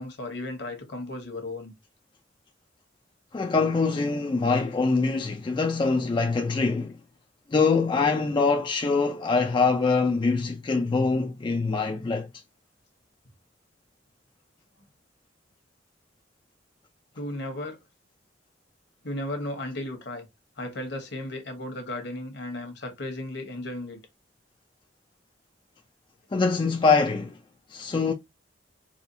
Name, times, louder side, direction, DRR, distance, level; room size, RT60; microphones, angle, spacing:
voice 1, 0.0-1.7 17.1-17.8 19.0-20.3 20.6-24.0, left 1 dB, 65° left, 1.1 m, -35 dB
voice 2, 3.3-7.0 7.5-12.3 26.3-27.4 27.7-28.1, left 4 dB, 25° left, 0.3 m, -24 dB
4.2 x 2.3 x 2.6 m
head